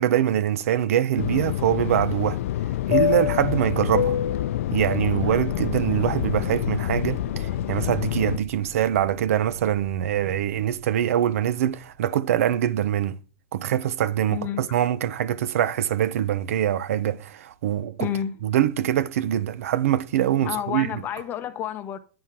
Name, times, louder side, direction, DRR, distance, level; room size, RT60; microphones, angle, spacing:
voice 1, 0.0-2.4 2.9-4.2 4.7-13.2 13.5-18.1 18.4-20.9, right 11 dB, 80° right, 0.6 m, -24 dB
Fixed-wing aircraft airplane, 1.2-8.4, left 12 dB, 80° left, 0.4 m, -26 dB
sound 1, 5.2-12.1, right 5 dB, 45° right, 0.8 m, -42 dB
voice 2, 14.3-14.7 18.0-18.4 20.4-22.0, left 10 dB, 25° left, 0.6 m, -30 dB
9.5 x 3.7 x 4.3 m
supercardioid pair, 155°, 8 cm